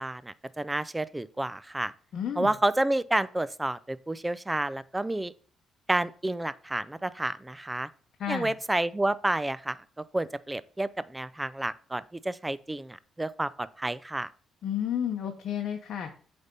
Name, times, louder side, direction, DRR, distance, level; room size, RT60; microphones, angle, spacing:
voice 1, 0.0-1.9 2.4-5.3 5.9-7.9 8.3-9.8 10.1-14.3, right 1 dB, 10° right, 0.4 m, -30 dB
voice 2, 2.1-2.5 8.2-8.5 14.6-16.1, left 9 dB, 65° left, 0.9 m, -31 dB
8.0 x 3.5 x 5.3 m
cardioid pair, 90°, 0 cm